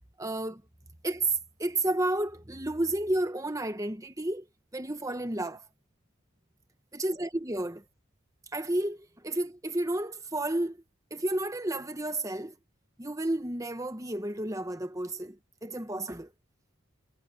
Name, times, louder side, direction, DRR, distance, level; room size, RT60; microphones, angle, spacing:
voice 1, 0.2-0.6 1.0-4.5 4.7-5.6 6.9-7.8 8.5-10.8 11.1-12.5 13.0-16.3, right 1 dB, 15° right, 1.2 m, -31 dB
head